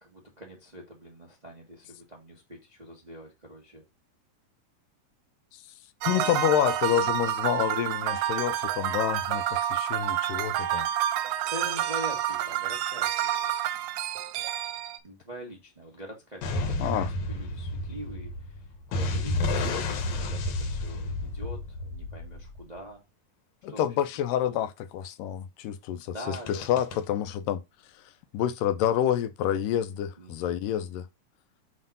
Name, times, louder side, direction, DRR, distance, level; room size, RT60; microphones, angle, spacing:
voice 1, 0.0-3.9 11.3-13.5 15.0-23.0 23.7-23.9 24.4-24.7 26.0-27.0 30.2-30.7, equal, 30° right, 0.7 m, -44 dB
sound 1, 6.0-15.0, right 12 dB, 75° right, 1.8 m, -29 dB
voice 2, 6.1-10.9 16.8-17.1 23.6-27.6 28.3-31.1, left 10 dB, 80° left, 2.1 m, -28 dB
sound 2, 16.4-22.8 26.3-27.0, left 2 dB, 65° left, 1.9 m, -31 dB
7.5 x 3.1 x 5.3 m
omnidirectional pair, 4.0 m